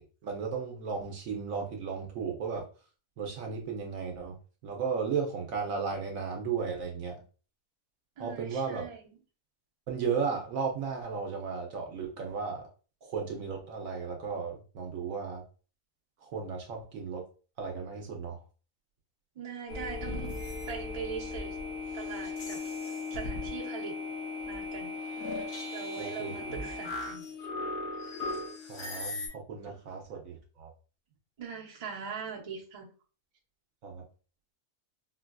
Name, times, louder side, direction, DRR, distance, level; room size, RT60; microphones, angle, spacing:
voice 1, 0.0-2.6 3.2-7.2 8.2-8.8 9.9-12.7 13.0-15.4 16.2-17.2 17.6-18.4 26.0-26.3 28.7-30.7 33.8-34.0, right 5 dB, 65° right, 1 dB, 0.9 m, -35 dB
voice 2, 8.2-9.0 19.3-20.3 20.7-21.6 21.9-22.7 23.1-24.0 24.4-25.0 25.7-27.2 29.6-29.7 31.4-32.9, right 6 dB, 35° right, -3 dB, 0.6 m, -41 dB
sound 1, 19.7-29.3, left 3 dB, 65° left, 1.2 m, -37 dB
3.8 x 2.3 x 2.2 m, 0.37 s
omnidirectional pair, 1.7 m